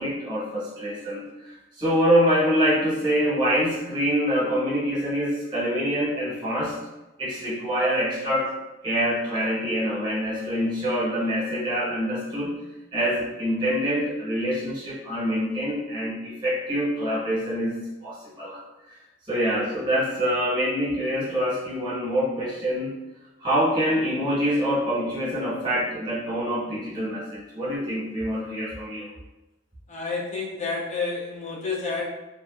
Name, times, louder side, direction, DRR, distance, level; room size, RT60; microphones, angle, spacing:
voice 1, 0.0-6.8 7.2-8.5 8.8-12.6 12.9-17.7 18.0-18.6 19.3-22.9 23.4-29.1, equal, 25° right, -7 dB, 0.9 m, -25 dB
voice 2, 29.9-32.1, left 4 dB, 35° left, -3 dB, 0.5 m, -29 dB
2.6 x 2.4 x 2.3 m, 1.0 s
head